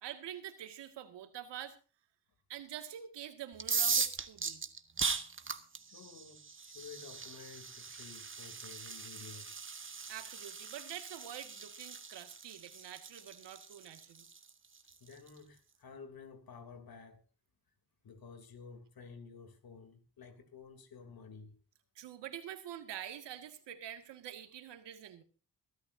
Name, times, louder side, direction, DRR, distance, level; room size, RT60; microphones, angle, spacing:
voice 1, 0.0-1.8 2.5-4.6 10.1-14.3 22.0-25.2, right 10 dB, 85° right, 2.1 m, -46 dB
sound 1, 3.5-15.3, right 5 dB, 30° right, 1.4 m, -39 dB
voice 2, 5.8-9.6 15.0-17.2 18.0-21.5, left 5 dB, 60° left, 3.2 m, -52 dB
23.5 x 12.5 x 2.7 m
cardioid pair, 80°, 41 cm